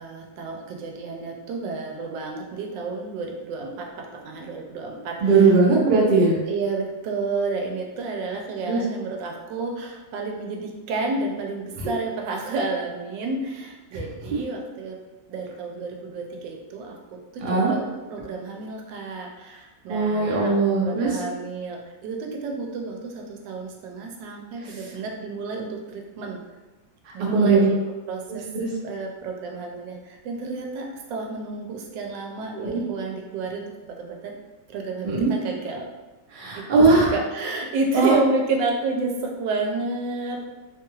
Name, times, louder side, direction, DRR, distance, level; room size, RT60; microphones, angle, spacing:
voice 1, 0.0-5.5 6.4-15.0 15.3-26.4 27.1-27.8 28.1-28.5 28.8-34.4 34.7-35.9 36.5-36.6 36.9-40.4, right 3 dB, 85° right, 1 dB, 1.3 m, -31 dB
voice 2, 5.2-6.3 8.7-8.8 17.4-17.7 19.9-21.1 27.3-27.7 28.3-28.7 32.5-32.8 35.0-35.3 36.3-37.1 37.9-38.1, right 3 dB, 65° right, -4 dB, 0.4 m, -19 dB
3.1 x 2.3 x 3.0 m, 1.2 s
omnidirectional pair, 1.9 m